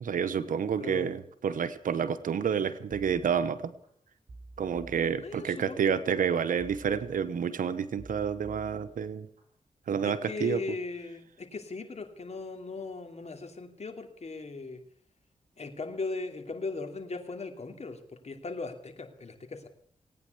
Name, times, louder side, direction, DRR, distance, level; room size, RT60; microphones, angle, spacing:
voice 1, 0.0-3.7 4.6-9.3 9.9-10.6, right 7 dB, 90° right, 12 dB, 0.9 m, -29 dB
voice 2, 0.8-1.1 5.2-6.0 10.0-14.8 15.6-19.7, left 3 dB, 55° left, 6 dB, 2.7 m, -38 dB
sound 1, 2.9-3.9 4.3-5.7 6.6-7.6 8.0-9.4 9.8-10.2, right 2 dB, 50° right, 5.6 m, -51 dB
18.5 x 9.5 x 7.9 m, 0.62 s
cardioid pair, 55°, 14 cm